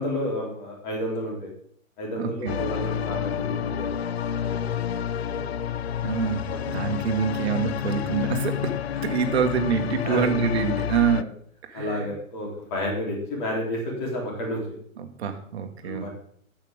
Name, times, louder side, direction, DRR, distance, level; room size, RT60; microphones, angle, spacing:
voice 1, 0.0-1.5 2.0-3.9 4.4-5.4 6.4-6.7 10.0-10.3 11.1-11.3 11.7-14.6 15.8-16.1, left 1 dB, 35° left, -1 dB, 3.3 m, -31 dB
voice 2, 2.2-2.6 6.0-6.4 6.7-8.7 9.0-11.3 11.6-12.1 15.0-16.1, right 7 dB, 50° right, 6 dB, 1.6 m, -26 dB
sound 1, 2.5-11.2, left 9 dB, 50° left, 0.5 m, -29 dB
13.0 x 8.1 x 3.6 m, 0.63 s
hypercardioid pair, 135°, 41 cm